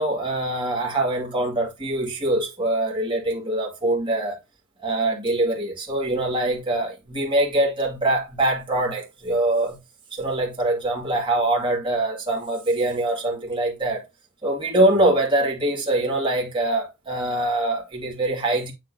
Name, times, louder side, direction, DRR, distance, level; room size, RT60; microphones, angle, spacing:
voice 1, 0.0-4.4 4.8-9.8 10.1-14.0 14.4-18.7, right 1 dB, 25° right, 2.3 m, -23 dB
8.0 x 3.6 x 3.7 m
head